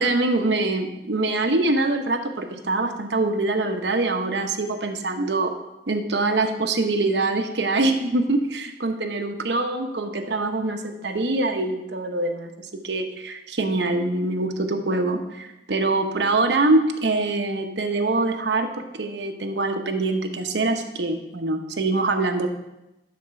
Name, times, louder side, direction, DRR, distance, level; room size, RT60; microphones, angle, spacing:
voice 1, 0.0-5.5 5.9-22.5, right 2 dB, 90° right, 4 dB, 0.9 m, -24 dB
11.5 x 4.3 x 5.8 m, 0.94 s
head